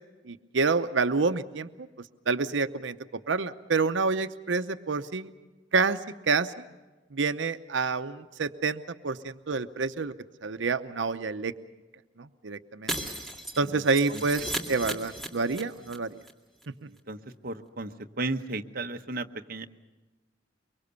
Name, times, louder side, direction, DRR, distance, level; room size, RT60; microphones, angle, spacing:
voice 1, 0.3-1.7 2.3-3.0 3.3-5.3 5.7-6.0 6.3-6.5 7.1-10.1 10.4-11.5 12.2-12.9 13.6-16.1, right 4 dB, 90° right, 10 dB, 0.8 m, -28 dB
Shatter, 12.9-16.0 16.2-16.3 16.6-16.7, right 1 dB, ahead, 2.2 m, -35 dB
voice 2, 16.9-17.9 18.2-19.7, right 2 dB, 50° right, 6 dB, 1.0 m, -35 dB
23.5 x 23.5 x 6.8 m, 1.2 s
head